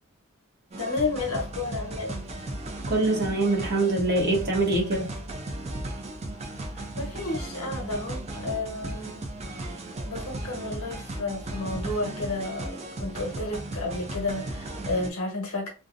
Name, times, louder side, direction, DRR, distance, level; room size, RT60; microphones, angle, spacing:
sound 1, 0.7-15.1, right 1 dB, 30° right, 0.4 m, -36 dB
voice 1, 0.8-2.2 6.7-9.3 10.0-15.7, left 2 dB, 70° left, 0.9 m, -32 dB
voice 2, 2.9-5.1, right 2 dB, 50° right, 0.8 m, -24 dB
2.5 x 2.0 x 2.4 m
head